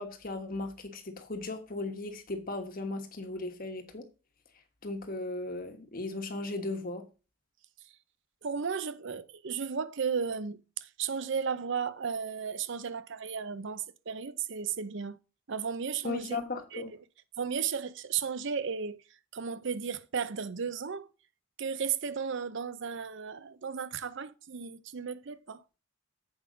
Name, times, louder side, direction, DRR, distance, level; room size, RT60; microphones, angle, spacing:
voice 1, 0.0-4.0 4.8-7.1 16.0-16.9, left 2 dB, 40° left, 1.3 m, -37 dB
voice 2, 8.4-15.2 15.5-16.4 16.7-16.8 17.4-19.0 19.3-21.1 21.6-25.6, right 6 dB, 55° right, 0.6 m, -34 dB
8.0 x 5.2 x 5.1 m
head